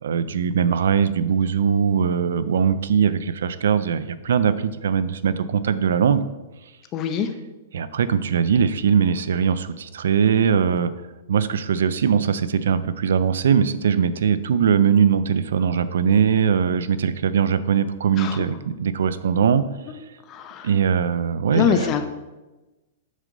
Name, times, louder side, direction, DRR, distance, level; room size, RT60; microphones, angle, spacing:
voice 1, 0.0-6.2 7.7-10.9 11.3-19.6 20.6-21.9, right 7 dB, 80° right, 14 dB, 0.4 m, -21 dB
voice 2, 6.9-7.3 18.2-18.4 19.9-20.0 20.3-20.7 21.5-22.0, left 8 dB, 20° left, 7 dB, 0.4 m, -23 dB
6.3 x 3.9 x 5.3 m, 1.1 s
supercardioid pair, 170°, 0 cm